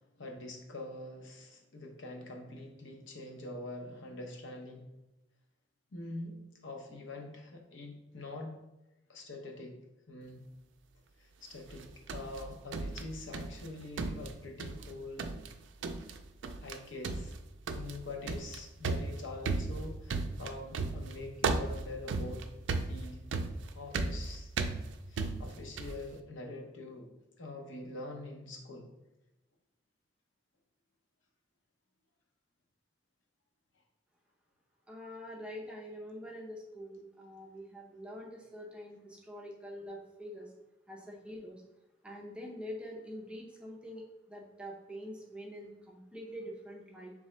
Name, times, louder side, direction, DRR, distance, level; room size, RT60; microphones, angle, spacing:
voice 1, 0.2-4.9 5.9-6.4 6.6-8.6 9.1-9.8 10.1-10.5 11.2-15.3 16.6-17.3 17.7-22.5 22.9-23.2 23.7-24.5 25.1-27.1 27.4-28.9, left 2 dB, 80° left, 3 dB, 0.8 m, -44 dB
sound 1, 11.7-13.7 14.0-14.9 15.2-15.5 15.8-16.2 16.4-16.8 17.0-26.0, right 3 dB, 75° right, 0.4 m, -35 dB
voice 2, 34.9-40.5 40.9-41.6 42.0-47.1, equal, 5° right, -2 dB, 0.6 m, -45 dB
3.8 x 3.6 x 3.2 m, 0.97 s
head